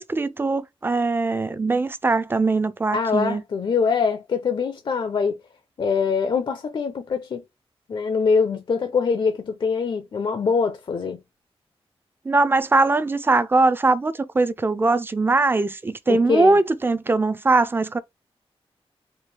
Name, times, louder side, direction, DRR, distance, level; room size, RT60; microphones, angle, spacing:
voice 1, 0.0-3.4 12.3-18.0, right 3 dB, 20° right, 0.4 m, -21 dB
voice 2, 2.9-5.4 5.8-7.4 7.9-11.2 16.1-16.6, left 5 dB, 50° left, 0.5 m, -23 dB
4.5 x 2.3 x 3.2 m
wide cardioid pair, 160°, 10 cm